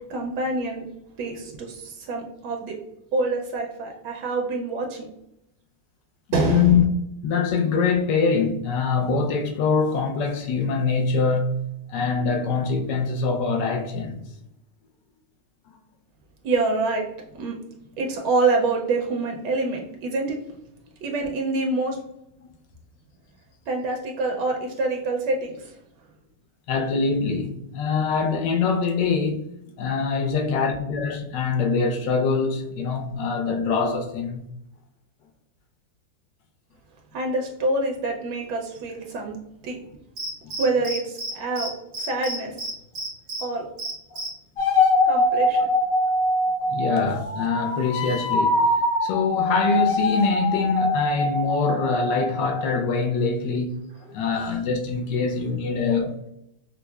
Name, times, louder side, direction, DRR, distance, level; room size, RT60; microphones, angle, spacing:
voice 1, 0.1-0.8 1.2-2.8 3.1-5.1 6.3-6.8 16.4-17.1 17.4-17.6 18.0-20.4 21.0-22.0 23.7-25.7 37.1-39.4 39.6-39.8 40.6-41.7 42.0-42.5 43.4-43.7 45.1-45.7, right 3 dB, 75° right, 1.2 m, -26 dB
voice 2, 6.3-6.8 7.2-14.2 26.7-29.4 29.8-34.4 46.7-48.6 49.0-56.2, left 5 dB, 75° left, 1.2 m, -24 dB
Cricket, 40.2-41.3 41.6-41.7 41.9-43.4 43.8-44.3, right 2 dB, 50° right, 0.7 m, -31 dB
sound 1, 44.6-52.9, left 1 dB, 60° left, 1.0 m, -23 dB
5.4 x 2.1 x 2.2 m
omnidirectional pair, 2.0 m